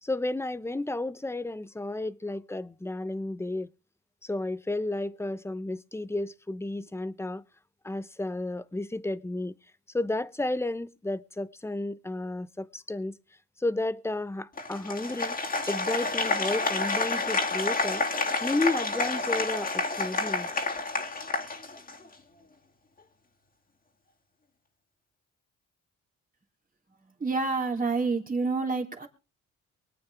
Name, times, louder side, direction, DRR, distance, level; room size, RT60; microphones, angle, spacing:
voice 1, 0.0-3.7 4.2-7.4 7.8-9.5 9.9-13.2 13.6-15.4 15.7-18.0 18.4-20.5, left 2 dB, 10° left, 0.8 m, -32 dB
Applause, 14.6-22.1, left 3 dB, 30° left, 2.8 m, -29 dB
voice 2, 27.2-29.1, right 4 dB, 30° right, 3.3 m, -28 dB
24.0 x 8.8 x 3.5 m
cardioid pair, 90°, 30 cm